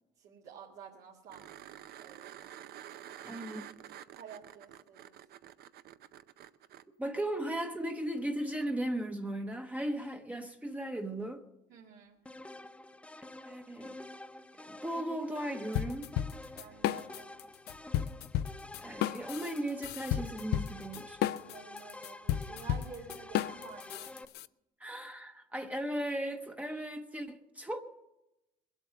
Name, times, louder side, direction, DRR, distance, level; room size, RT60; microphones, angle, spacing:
voice 1, 0.2-2.3 4.1-5.1 11.7-12.2 16.6-17.4 21.4-24.1, right 6 dB, 80° right, 2.0 m, -51 dB
sound 1, 1.3-6.8 9.5-9.6, right 11 dB, 65° right, 0.6 m, -49 dB
voice 2, 3.1-3.7 7.0-11.4 13.5-14.0 14.6-16.1 18.8-21.2 24.8-27.8, right 1 dB, 10° right, 0.8 m, -37 dB
sound 2, 12.2-24.2, left 2 dB, 5° left, 0.4 m, -49 dB
sound 3, 15.7-17.4 17.7-24.5, left 12 dB, 75° left, 0.4 m, -33 dB
21.0 x 8.1 x 6.8 m
cardioid pair, 110°, 17 cm